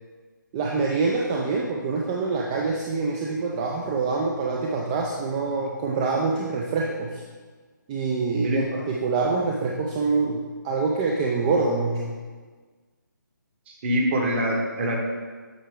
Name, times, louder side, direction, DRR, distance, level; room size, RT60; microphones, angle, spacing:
voice 1, 0.5-7.2 7.9-12.1, right 4 dB, 20° right, -1 dB, 0.4 m, -25 dB
voice 2, 13.7-15.0, equal, 35° right, 1 dB, 1.2 m, -24 dB
8.5 x 4.3 x 3.6 m, 1.4 s
figure-of-eight pair, 150°, 11 cm